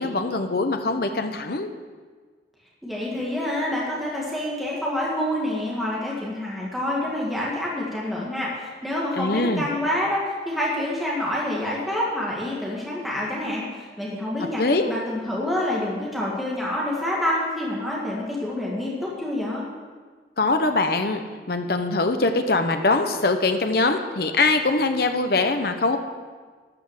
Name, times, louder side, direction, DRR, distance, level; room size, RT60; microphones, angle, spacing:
voice 1, 0.0-1.7 9.1-9.7 14.6-14.9 20.4-21.2 21.5-26.0, left 3 dB, 55° left, 6 dB, 0.9 m, -22 dB
voice 2, 2.8-14.6 14.9-19.7, left 1 dB, ahead, -5 dB, 1.8 m, -27 dB
12.5 x 6.2 x 7.3 m, 1.5 s
head